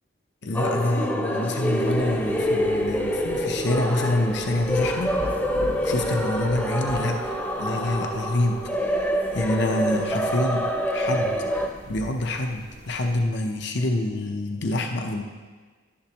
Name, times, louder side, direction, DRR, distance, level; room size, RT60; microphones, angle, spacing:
voice 1, 0.4-5.2 5.8-15.2, left 1 dB, 65° left, 3 dB, 0.7 m, -27 dB
sound 1, 0.5-11.7, equal, 10° left, 0.7 m, -26 dB
sound 2, 1.9-13.2, equal, 80° right, 1.9 m, -41 dB
12.0 x 10.5 x 3.0 m, 1.4 s
head